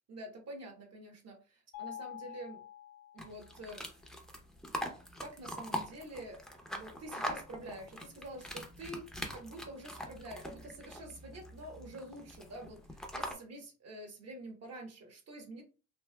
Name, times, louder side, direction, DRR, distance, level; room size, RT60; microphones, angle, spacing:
voice 1, 0.1-2.6 3.1-3.8 5.2-6.4 6.8-15.6, right 1 dB, 55° right, 3 dB, 1.2 m, -47 dB
Mallet percussion, 1.7-3.7, left 11 dB, 45° left, 0.5 m, -47 dB
sound 1, 3.2-13.3, equal, ahead, 0.6 m, -43 dB
3.2 x 2.6 x 2.2 m, 0.34 s
cardioid pair, 90°, 30 cm